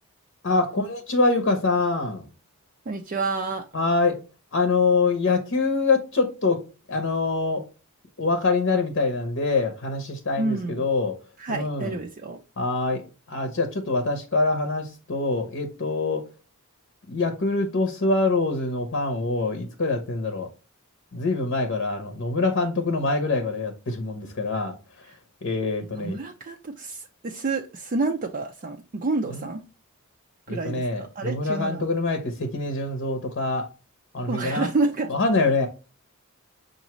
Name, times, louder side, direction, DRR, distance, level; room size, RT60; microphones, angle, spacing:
voice 1, 0.4-2.2 3.7-4.2 4.5-6.6 6.9-7.6 8.2-11.1 11.5-12.0 12.6-16.2 17.1-20.5 21.1-24.7 25.4-26.2 29.3-29.4 30.5-33.7 34.1-34.7 35.1-35.7, left 3 dB, 55° left, 0.8 m, -25 dB
voice 2, 2.9-3.6 10.4-10.8 11.4-12.4 25.1-25.2 25.8-29.6 30.5-31.8 34.3-35.1, right 3 dB, 40° right, 0.4 m, -29 dB
5.8 x 2.6 x 3.0 m
head